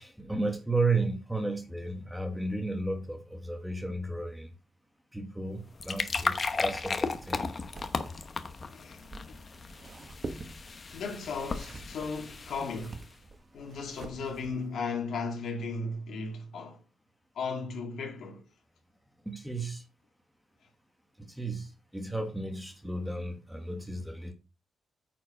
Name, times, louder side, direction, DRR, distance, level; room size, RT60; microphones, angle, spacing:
voice 1, 0.0-4.5 5.1-7.5 19.2-19.8 21.2-24.3, right 3 dB, 5° right, 1.1 m, -33 dB
sound 1, 5.5-13.1, left 4 dB, 30° left, 0.8 m, -35 dB
sound 2, 6.4-14.7, right 3 dB, 30° right, 1.2 m, -47 dB
voice 2, 8.7-9.0 9.3-9.4 10.9-13.0 13.5-16.8 17.4-18.4, left 4 dB, 65° left, 2.5 m, -36 dB
9.2 x 4.6 x 5.2 m
wide cardioid pair, 175°, 0 cm